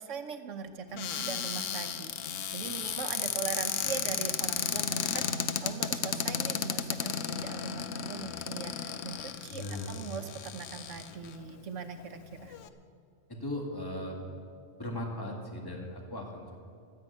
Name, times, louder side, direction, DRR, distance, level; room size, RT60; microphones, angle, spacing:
voice 1, 0.0-12.6, right 6 dB, 85° right, 7 dB, 1.3 m, -41 dB
Cupboard open or close, 1.0-11.3 12.0-12.1 12.3-12.7, left 8 dB, 90° left, 1.1 m, -34 dB
voice 2, 9.5-9.9 13.3-14.2 14.8-16.6, left 1 dB, 20° left, 0 dB, 2.0 m, -38 dB
12.5 x 9.7 x 8.4 m, 2.3 s
omnidirectional pair, 1.3 m